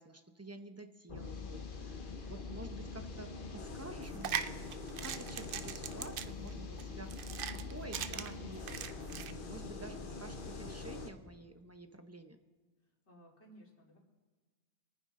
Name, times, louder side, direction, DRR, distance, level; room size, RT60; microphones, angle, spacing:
voice 1, 0.0-8.6 9.2-12.4, right 2 dB, 15° right, 7 dB, 0.7 m, -50 dB
sound 1, 1.1-11.1, left 4 dB, 50° left, 1.2 m, -44 dB
sound 2, 4.0-9.3, right 8 dB, 60° right, 0.7 m, -41 dB
voice 2, 12.8-14.0, right 1 dB, 75° left, -1 dB, 2.9 m, -59 dB
25.5 x 9.6 x 3.8 m, 1.4 s
omnidirectional pair, 1.2 m